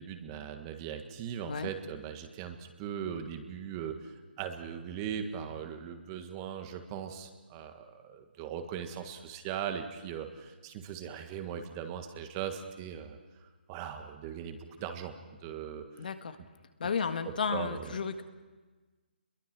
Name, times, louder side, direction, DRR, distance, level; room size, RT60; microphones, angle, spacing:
voice 1, 0.0-4.1 4.4-13.2 13.7-15.1 15.4-15.8 17.2-17.9, right 8 dB, 20° right, 6 dB, 1.6 m, -39 dB
voice 2, 16.0-16.4 16.8-18.2, left 6 dB, 55° left, 8 dB, 1.7 m, -33 dB
28.0 x 22.5 x 6.1 m, 1.3 s
hypercardioid pair, 160°, 6 cm